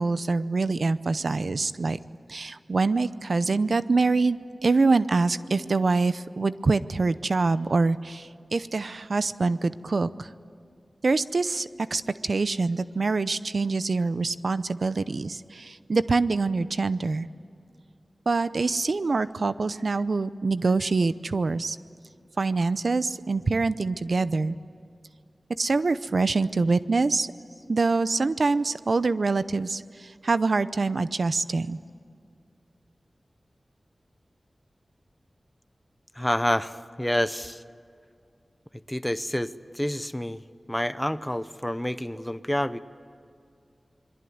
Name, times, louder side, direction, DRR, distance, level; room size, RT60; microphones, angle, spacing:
voice 1, 0.0-2.0 2.3-10.3 11.0-17.3 18.3-21.8 22.4-24.6 25.6-27.3 27.7-31.8, right 3 dB, 65° right, 14 dB, 0.6 m, -25 dB
voice 2, 36.2-37.6 38.9-40.4 40.7-42.8, equal, 10° left, 14 dB, 0.7 m, -28 dB
26.5 x 22.5 x 9.5 m, 2.4 s
wide cardioid pair, 90°, 0 cm